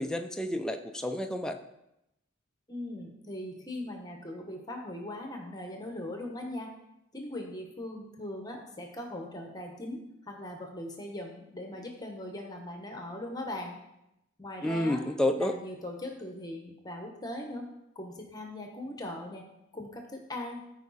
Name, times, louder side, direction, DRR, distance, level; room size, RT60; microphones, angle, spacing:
voice 1, 0.0-1.6 14.6-15.5, left 1 dB, 5° left, 5 dB, 0.5 m, -30 dB
voice 2, 2.7-6.7 7.1-10.0 10.3-13.8 14.4-15.0 15.4-17.7 17.9-19.5 19.7-20.6, left 1 dB, 20° left, 2 dB, 1.1 m, -40 dB
14.0 x 4.8 x 4.1 m, 0.87 s
head